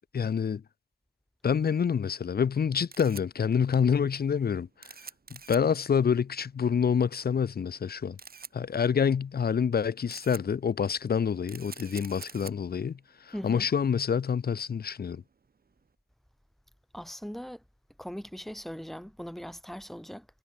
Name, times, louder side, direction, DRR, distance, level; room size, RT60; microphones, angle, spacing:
voice 1, 0.1-0.6 1.4-4.9 5.3-8.2 8.5-15.2, left 7 dB, 80° left, 0.8 m, -27 dB
Camera, 2.5-15.9, right 5 dB, 75° right, 1.9 m, -50 dB
voice 2, 13.3-13.7 16.9-17.6 18.0-20.3, equal, ahead, 2.1 m, -40 dB
wide cardioid pair, 80°, 16 cm